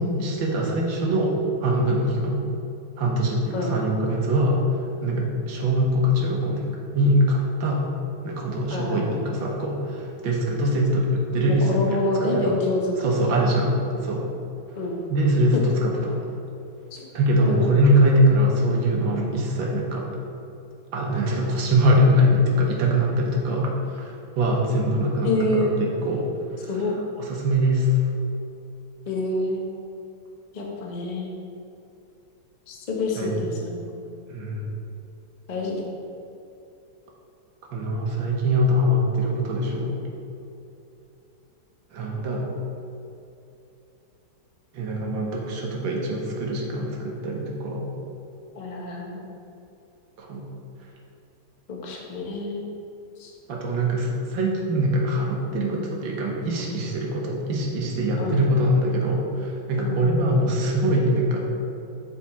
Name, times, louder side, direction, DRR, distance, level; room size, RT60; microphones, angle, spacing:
voice 1, 0.0-1.3 1.6-2.4 3.0-4.6 5.0-6.7 6.9-7.9 8.2-12.6 13.0-14.3 15.1-16.2 17.1-20.1 20.9-26.3 26.6-26.7 27.2-28.0 33.2-33.5 34.3-34.7 37.7-40.0 41.9-42.5 44.7-47.9 50.2-50.5 53.5-61.4, equal, 70° right, -1 dB, 1.7 m, -23 dB
voice 2, 8.7-9.2 11.5-13.4 14.8-15.0 15.5-15.6 16.9-17.1 17.5-17.7 25.2-25.7 26.7-26.9 29.1-29.7 30.5-31.4 32.7-33.8 35.5-35.8 48.6-49.2 51.7-52.7 53.2-53.3 58.2-58.4 59.8-60.0, left 2 dB, 65° left, -1 dB, 0.4 m, -27 dB
7.0 x 4.7 x 4.2 m, 2.8 s
omnidirectional pair, 2.3 m